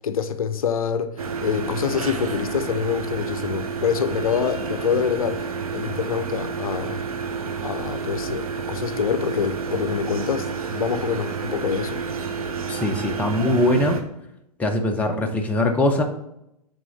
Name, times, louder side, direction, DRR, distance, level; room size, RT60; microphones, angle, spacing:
voice 1, 0.0-7.0 7.6-12.0, left 7 dB, 65° left, 0.5 m, -26 dB
sound 1, 1.2-14.0, right 5 dB, 65° right, 0.9 m, -30 dB
voice 2, 12.7-14.0 14.6-16.0, left 1 dB, 5° left, 0.6 m, -21 dB
6.0 x 3.6 x 5.5 m
figure-of-eight pair, 110°, 20 cm